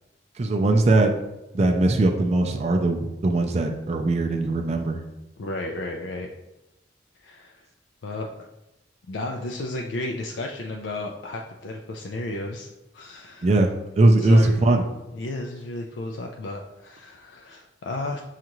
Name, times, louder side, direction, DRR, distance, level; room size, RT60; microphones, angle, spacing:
voice 1, 0.4-1.1 1.5-5.0 13.4-14.8, right 2 dB, 35° right, 3 dB, 0.4 m, -20 dB
voice 2, 5.4-6.3 7.2-7.6 8.0-8.3 9.1-13.5 14.2-14.6 15.1-18.2, left 2 dB, 80° left, 1 dB, 0.4 m, -33 dB
6.3 x 2.4 x 2.9 m, 0.94 s
head